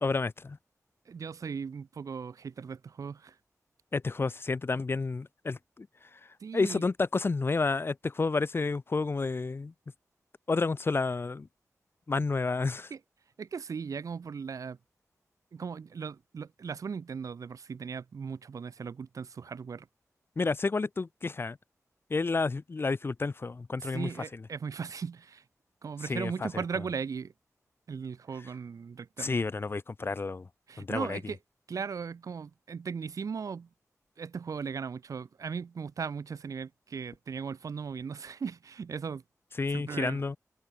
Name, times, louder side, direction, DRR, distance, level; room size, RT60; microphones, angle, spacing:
voice 1, 0.0-0.6 3.9-5.9 6.1-6.2 6.5-9.7 10.5-11.5 12.1-12.9 20.4-21.6 22.1-24.4 26.0-26.6 29.2-30.5 30.8-31.2 39.6-40.4, left 3 dB, 40° left, 0.7 m, -30 dB
voice 2, 1.1-3.4 6.4-6.8 12.9-13.0 13.4-14.8 15.5-19.9 23.8-25.4 25.8-27.3 27.9-29.3 30.7-31.4 31.7-33.7 34.2-39.2 39.7-40.2, right 6 dB, 70° right, 0.6 m, -37 dB
wide cardioid pair, 105°, 6 cm